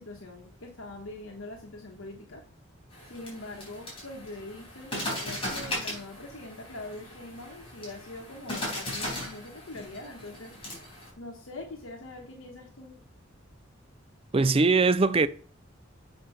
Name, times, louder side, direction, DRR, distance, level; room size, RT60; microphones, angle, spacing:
voice 1, 0.0-2.4 3.0-10.5 11.2-12.9, left 2 dB, 75° left, 1.3 m, -43 dB
sound 1, 2.9-11.1, left 1 dB, 30° left, 4.2 m, -38 dB
voice 2, 14.3-15.3, right 3 dB, 30° right, 0.5 m, -21 dB
7.8 x 5.2 x 5.6 m
head